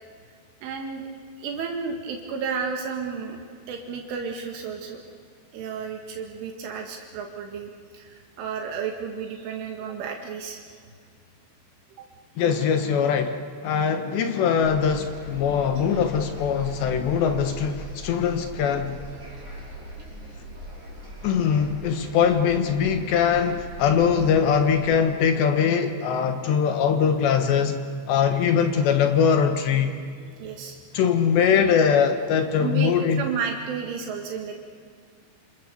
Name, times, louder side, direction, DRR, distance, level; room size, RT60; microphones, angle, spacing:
voice 1, 0.6-1.0 1.4-3.4 3.7-5.0 5.5-10.6 12.0-12.1 30.4-30.8 31.4-31.7 32.6-32.9 33.2-34.6, right 6 dB, 75° right, 4.3 m, -32 dB
voice 2, 12.4-19.0 21.2-27.8 28.1-29.9 30.9-33.2, left 7 dB, 70° left, 3.4 m, -22 dB
sound 1, 14.6-24.9, right 1 dB, 30° right, 5.8 m, -39 dB
28.0 x 28.0 x 7.0 m
omnidirectional pair, 5.7 m